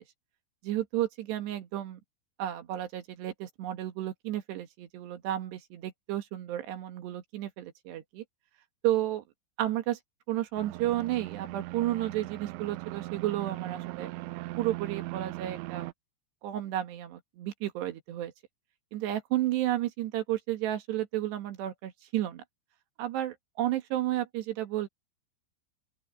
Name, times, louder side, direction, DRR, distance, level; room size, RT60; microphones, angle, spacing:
voice 1, 0.6-2.0 2.4-8.2 8.8-9.2 9.6-10.0 10.3-14.1 14.6-15.9 16.4-18.3 18.9-22.4 23.0-24.9, right 13 dB, 65° right, 3.6 m, -32 dB
sound 1, 10.6-15.9, right 20 dB, 85° right, 3.0 m, -39 dB
open air
omnidirectional pair, 5.5 m